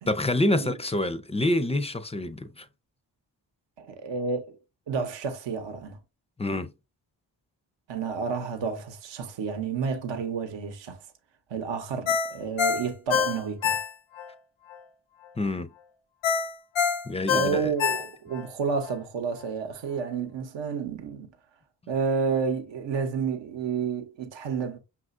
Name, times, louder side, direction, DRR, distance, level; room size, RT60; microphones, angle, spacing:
voice 1, 0.1-2.7 6.4-6.7 15.4-15.7 17.1-17.7, left 1 dB, 15° left, 0.4 m, -27 dB
voice 2, 3.8-4.6 4.9-6.0 7.9-11.0 11.5-13.8 17.3-21.3 21.9-24.8, right 5 dB, 70° right, 0.9 m, -30 dB
Ringtone, 12.1-14.3 14.7-14.8 16.2-18.5 18.9-19.0, left 7 dB, 80° left, 0.6 m, -26 dB
5.7 x 2.4 x 2.5 m
cardioid pair, 55°, 45 cm